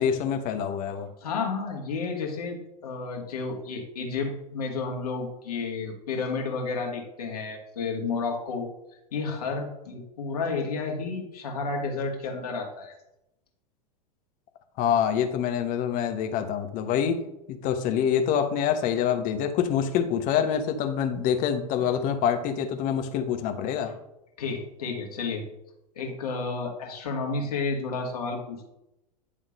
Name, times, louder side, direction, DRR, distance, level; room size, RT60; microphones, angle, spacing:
voice 1, 0.0-1.1 14.8-17.2 17.5-23.9, left 8 dB, 40° left, 7 dB, 1.1 m, -26 dB
voice 2, 1.2-8.7 9.1-13.0 21.8-21.9 23.8-23.9 24.4-25.4 26.0-28.7, left 4 dB, 70° left, 2 dB, 2.0 m, -31 dB
10.0 x 3.7 x 5.2 m, 0.89 s
figure-of-eight pair, 90°, 20 cm